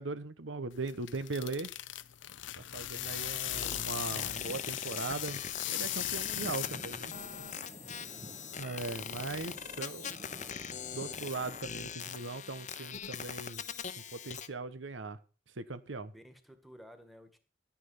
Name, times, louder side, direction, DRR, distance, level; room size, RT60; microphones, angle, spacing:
voice 1, 0.0-1.7 2.7-5.4 5.7-7.1 8.5-10.4 10.9-13.6 14.1-15.2 15.5-16.1, right 3 dB, 90° right, 1.1 m, -39 dB
sound 1, 0.7-7.1, left 14 dB, 75° left, 0.6 m, -38 dB
sound 2, 3.0-14.5, left 7 dB, 40° left, 0.8 m, -42 dB
voice 2, 3.1-3.9 7.9-8.4 16.1-17.4, equal, ahead, 1.8 m, -55 dB
sound 3, 3.4-11.6, right 1 dB, 25° right, 1.3 m, -52 dB
11.5 x 9.9 x 5.6 m
head